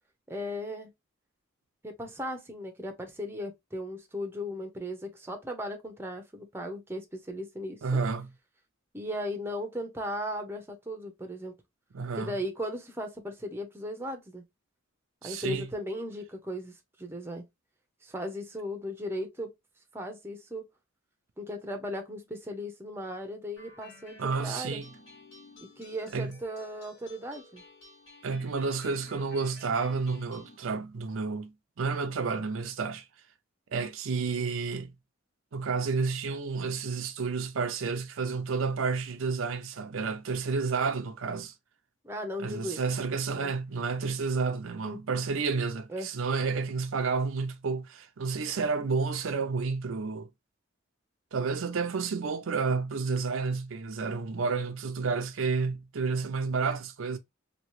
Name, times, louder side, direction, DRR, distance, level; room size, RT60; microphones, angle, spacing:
voice 1, 0.3-0.9 1.8-8.0 8.9-11.6 12.1-14.4 15.2-17.4 18.0-19.5 19.9-20.7 21.4-24.8 25.6-27.6 42.0-42.8 43.4-43.5 44.8-45.0 45.9-46.1, equal, 10° right, 0.6 m, -37 dB
voice 2, 7.8-8.3 11.9-12.3 15.2-15.7 24.2-24.9 26.1-26.3 28.2-33.0 33.7-34.9 35.5-41.5 42.4-50.3 51.3-57.2, right 4 dB, 70° right, 0.5 m, -30 dB
sound 1, 23.6-30.6, left 2 dB, 70° left, 1.3 m, -53 dB
2.9 x 2.8 x 3.0 m
head